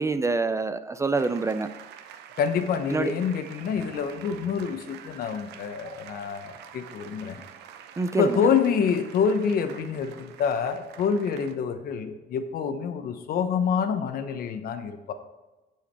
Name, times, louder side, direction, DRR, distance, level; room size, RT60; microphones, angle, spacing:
voice 1, 0.0-1.7 2.9-3.1 8.0-8.4, right 3 dB, 15° right, 12 dB, 0.4 m, -26 dB
sound 1, 1.1-11.6, right 9 dB, 80° right, 0.8 m, -47 dB
voice 2, 2.4-7.4 8.2-15.1, left 6 dB, 60° left, 8 dB, 1.0 m, -27 dB
10.5 x 4.9 x 4.5 m, 1.1 s
cardioid pair, 110°, 17 cm